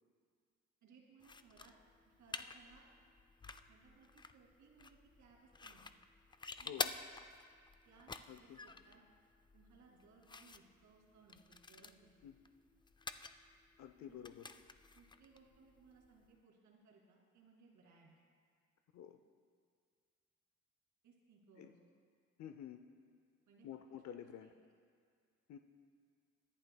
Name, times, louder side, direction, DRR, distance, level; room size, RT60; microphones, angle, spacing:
voice 1, 0.8-1.7 2.1-2.9 3.7-5.8 6.6-6.8 7.8-9.1 9.5-12.1 14.0-14.3 14.9-18.1 21.0-21.8 23.5-23.7 23.9-24.0 24.4-24.5, right 4 dB, 75° right, -2 dB, 2.5 m, -65 dB
sound 1, 1.2-16.4, left 4 dB, 15° left, 0.4 m, -50 dB
sound 2, 3.4-4.0 4.3-4.9 5.2-5.4 5.7-5.9 6.2-6.9 7.2-8.2, left 5 dB, 35° left, 1.5 m, -69 dB
voice 2, 8.3-8.6 12.2-12.4 13.8-14.5 18.9-19.2 21.6-21.7 22.4-22.8 23.6-24.5 25.5-25.6, left 9 dB, 65° left, 7 dB, 0.6 m, -50 dB
22.5 x 11.0 x 2.3 m, 2.1 s
cardioid pair, 90°, 30 cm